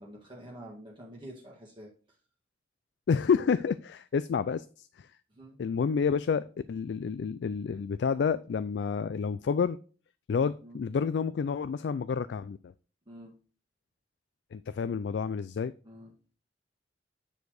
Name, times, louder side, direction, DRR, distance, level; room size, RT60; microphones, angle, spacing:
voice 1, 0.0-1.9 5.3-5.6 10.6-10.8 13.1-13.3 15.8-16.1, right 1 dB, 30° right, -4 dB, 1.8 m, -47 dB
voice 2, 3.1-5.1 5.6-9.8 10.3-12.7 14.5-15.7, left 6 dB, 75° left, 14 dB, 0.3 m, -29 dB
9.5 x 4.3 x 4.8 m, 0.39 s
head